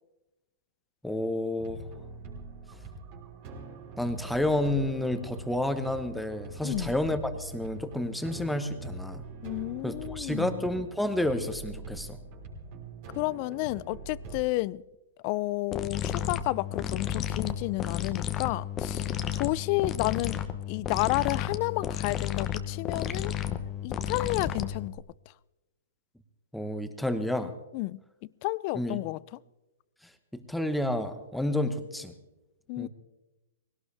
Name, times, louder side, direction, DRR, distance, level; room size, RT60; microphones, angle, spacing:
voice 1, 1.0-1.8 4.0-9.2 9.8-12.2 26.5-27.5 28.7-29.0 30.3-32.1 32.8-32.9, left 1 dB, ahead, 1.2 m, -30 dB
sound 1, 1.6-14.4, right 3 dB, 45° right, 4.1 m, -43 dB
voice 2, 6.6-7.0 9.4-10.7 13.1-14.8 15.2-23.4 23.8-25.0 27.7-28.0 28.4-29.2 32.7-32.9, left 20 dB, 40° left, 0.4 m, -31 dB
sound 2, 15.7-25.0, left 10 dB, 25° left, 1.0 m, -32 dB
20.5 x 17.5 x 3.4 m
hypercardioid pair, 135°, 0 cm